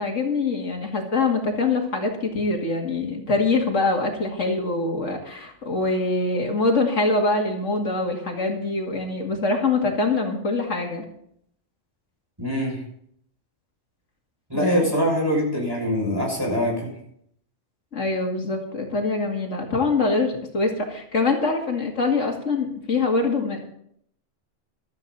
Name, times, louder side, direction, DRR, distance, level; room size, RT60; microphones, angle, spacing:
voice 1, 0.0-11.0 14.5-14.8 17.9-23.6, left 3 dB, 85° left, 2 dB, 2.6 m, -24 dB
voice 2, 12.4-12.8 14.5-16.9, equal, 20° right, -1 dB, 6.3 m, -23 dB
16.0 x 13.0 x 4.1 m, 0.68 s
omnidirectional pair, 1.3 m